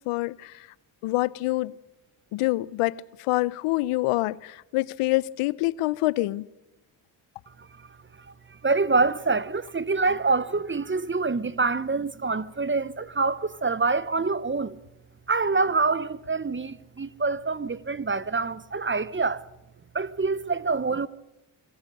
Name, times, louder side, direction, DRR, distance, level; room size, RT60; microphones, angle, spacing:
voice 1, 0.1-0.5 1.0-1.7 2.3-6.4, left 19 dB, 85° left, 0.6 m, -26 dB
voice 2, 8.6-14.8 15.3-19.4 19.9-21.1, right 4 dB, 25° right, 0.9 m, -26 dB
25.5 x 15.5 x 6.5 m
supercardioid pair, 50°, 50 cm